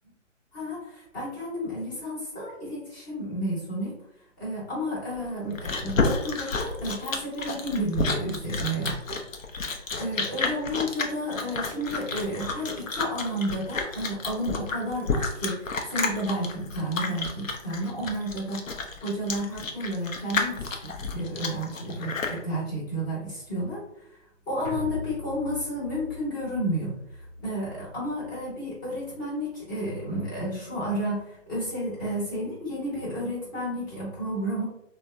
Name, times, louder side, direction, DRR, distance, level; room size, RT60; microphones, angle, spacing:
voice 1, 0.5-4.0 4.4-9.2 9.6-9.7 10.0-18.7 19.0-23.8 24.5-27.0 27.4-34.6, equal, 15° left, -8 dB, 0.8 m, -31 dB
Chewing mastication, 5.2-22.4, left 4 dB, 85° left, 0.6 m, -30 dB
sound 1, 24.6-29.1 29.4-29.5, equal, 30° right, 0.4 m, -41 dB
3.2 x 2.2 x 2.4 m, 0.81 s
figure-of-eight pair, 150°, 38 cm